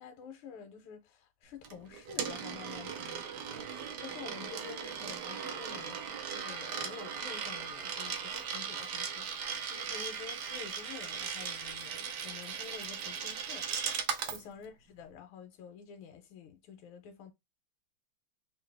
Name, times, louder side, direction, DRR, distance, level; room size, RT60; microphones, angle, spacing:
voice 1, 0.0-6.0 6.3-17.3, left 7 dB, 85° left, 1.5 m, -49 dB
Coin (dropping), 1.6-14.4, right 7 dB, 65° right, 1.1 m, -38 dB
3.8 x 2.6 x 3.3 m
omnidirectional pair, 2.3 m